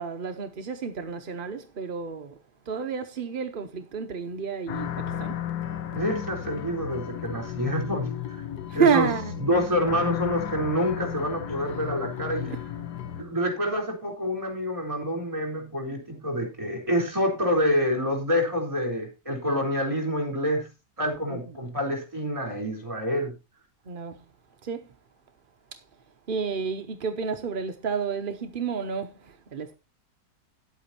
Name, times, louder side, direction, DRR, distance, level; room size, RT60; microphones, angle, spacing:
voice 1, 0.0-2.4 2.7-5.4 8.7-9.3 12.4-12.6 21.3-21.6 23.9-24.2 24.6-24.9 25.7-25.8 26.3-29.8, right 6 dB, 50° right, 0.6 m, -30 dB
sound 1, 4.7-13.2, left 10 dB, 65° left, 1.4 m, -34 dB
voice 2, 5.9-8.1 8.7-9.1 9.4-12.5 13.2-20.7 21.0-23.3, equal, 15° right, 4.0 m, -27 dB
10.0 x 8.3 x 4.3 m
omnidirectional pair, 1.9 m